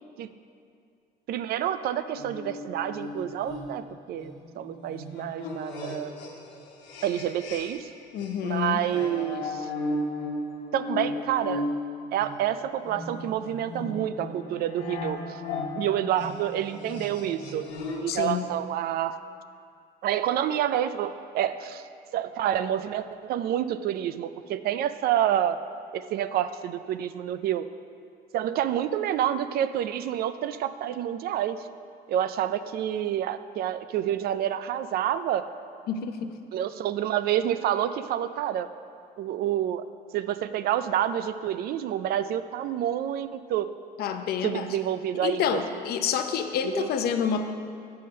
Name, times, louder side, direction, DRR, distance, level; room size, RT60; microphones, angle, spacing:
voice 1, 1.3-6.1 7.0-7.9 8.4-9.7 10.7-11.7 12.1-15.4 15.8-17.7 18.0-19.2 20.0-21.9 22.1-25.6 25.9-27.7 28.3-31.6 32.1-35.5 36.5-38.7 39.2-39.8 40.1-43.7 44.4-45.6 46.6-47.1, right 11 dB, 65° right, 12 dB, 0.4 m, -28 dB
sound 1, 2.1-7.9 8.2-18.1, left 2 dB, 90° left, 1.2 m, -36 dB
voice 2, 8.1-8.8 18.1-18.5 35.9-36.3 44.0-44.7 45.2-47.4, left 7 dB, 70° left, 7 dB, 0.6 m, -28 dB
7.6 x 5.6 x 5.3 m, 2.3 s
cardioid pair, 110°, 17 cm